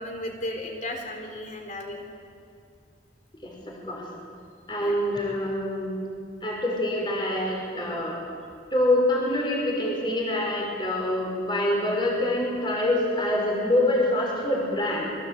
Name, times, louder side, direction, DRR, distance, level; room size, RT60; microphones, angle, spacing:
voice 1, 0.0-2.0 4.8-5.0, left 1 dB, 45° left, 3 dB, 4.2 m, -34 dB
voice 2, 3.4-4.1 4.7-6.0 6.4-8.2 8.7-15.1, left 1 dB, 25° left, -1 dB, 5.5 m, -25 dB
27.0 x 22.0 x 8.5 m, 2.2 s
head